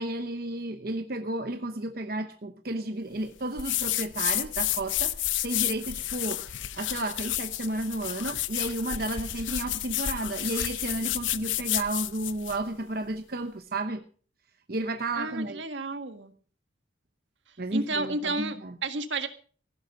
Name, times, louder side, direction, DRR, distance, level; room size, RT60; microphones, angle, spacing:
voice 1, 0.0-14.0 14.7-15.6 17.6-18.8, right 2 dB, 50° right, 7 dB, 0.9 m, -32 dB
sound 1, 3.6-12.6, left 13 dB, 85° left, 0.8 m, -31 dB
voice 2, 15.2-16.3 17.7-19.3, right 2 dB, 75° right, 8 dB, 1.7 m, -32 dB
16.0 x 11.5 x 5.4 m, 0.44 s
head